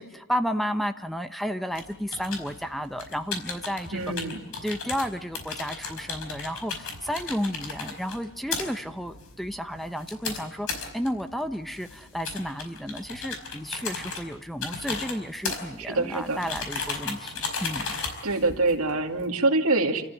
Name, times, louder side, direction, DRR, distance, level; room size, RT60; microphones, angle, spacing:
voice 1, 0.0-4.0 4.6-17.9, equal, ahead, 8 dB, 0.9 m, -32 dB
sound 1, 1.7-19.3, left 4 dB, 75° left, 4.9 m, -36 dB
voice 2, 3.9-4.4 15.8-16.4 18.2-20.0, right 2 dB, 75° right, 4 dB, 2.5 m, -25 dB
29.0 x 14.5 x 9.2 m, 0.95 s
head